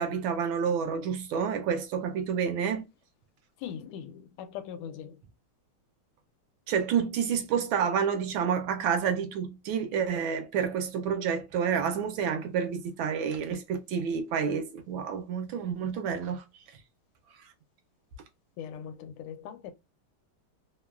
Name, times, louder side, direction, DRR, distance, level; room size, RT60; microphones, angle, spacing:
voice 1, 0.0-2.8 6.7-16.4, right 7 dB, 75° right, 1.2 m, -29 dB
voice 2, 3.6-5.2 18.6-19.7, left 8 dB, 85° left, 1.5 m, -40 dB
3.5 x 2.2 x 2.2 m
omnidirectional pair, 2.4 m